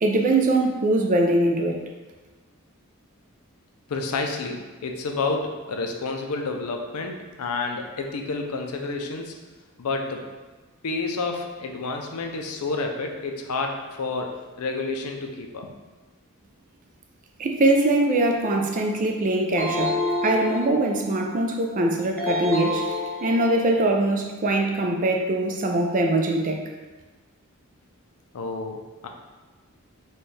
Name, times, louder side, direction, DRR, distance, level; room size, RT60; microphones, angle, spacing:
voice 1, 0.0-1.8 17.4-20.0 20.2-26.6, right 2 dB, 35° right, 2 dB, 0.4 m, -22 dB
voice 2, 3.9-9.3 9.8-10.3 10.8-15.7 28.3-29.1, left 3 dB, 90° left, 3 dB, 0.5 m, -30 dB
sound 1, 19.6-21.1 22.2-23.8, left 2 dB, 10° left, 0.7 m, -28 dB
4.2 x 2.3 x 3.2 m, 1.3 s
head